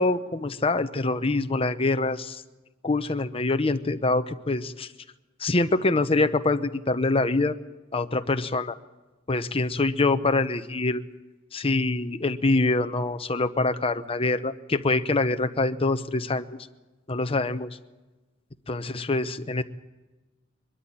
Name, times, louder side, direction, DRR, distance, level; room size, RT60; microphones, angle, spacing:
voice 1, 0.0-2.4 2.8-4.9 5.4-7.6 7.9-8.8 9.3-11.0 11.5-16.5 17.1-17.7 18.7-19.6, left 2 dB, 30° left, 10 dB, 0.8 m, -25 dB
23.0 x 13.0 x 9.6 m, 1.2 s
head